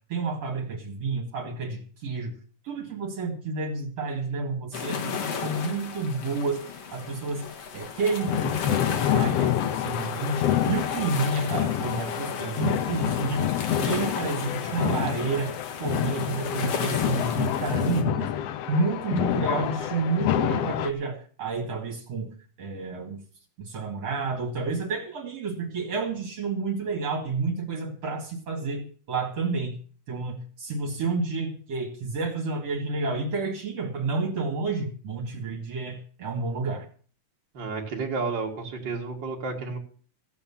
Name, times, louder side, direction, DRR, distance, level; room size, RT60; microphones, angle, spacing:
voice 1, 0.1-2.3 2.6-6.6 6.9-18.3 18.7-22.3 22.6-23.2 23.6-29.7 30.1-36.9, right 3 dB, 55° right, 1 dB, 3.1 m, -30 dB
sound 1, 4.7-18.0, left 6 dB, 55° left, 2.5 m, -35 dB
sound 2, 8.0-20.9, left 11 dB, 70° left, 1.6 m, -28 dB
voice 2, 37.5-39.8, right 4 dB, 35° right, 0 dB, 2.8 m, -31 dB
15.5 x 7.9 x 7.2 m, 0.43 s
omnidirectional pair, 3.6 m